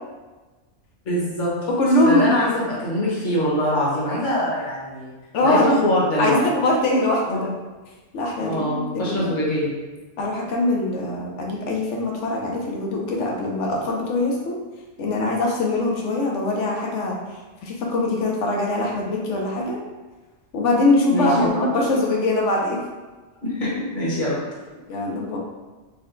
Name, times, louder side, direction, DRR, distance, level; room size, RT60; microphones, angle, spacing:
voice 1, 1.0-1.5 2.0-5.1 5.4-6.4 7.3-7.5 8.4-9.7 21.1-21.6 23.4-24.4, equal, 45° left, -7 dB, 1.3 m, -23 dB
voice 2, 1.7-2.3 5.3-5.7 6.2-7.5 8.1-8.6 8.9-9.3 10.2-14.6 15.0-17.2 17.6-19.8 20.5-22.8 24.9-25.4, left 2 dB, 85° left, -1 dB, 1.1 m, -22 dB
4.1 x 2.2 x 3.8 m, 1.2 s
omnidirectional pair, 1.2 m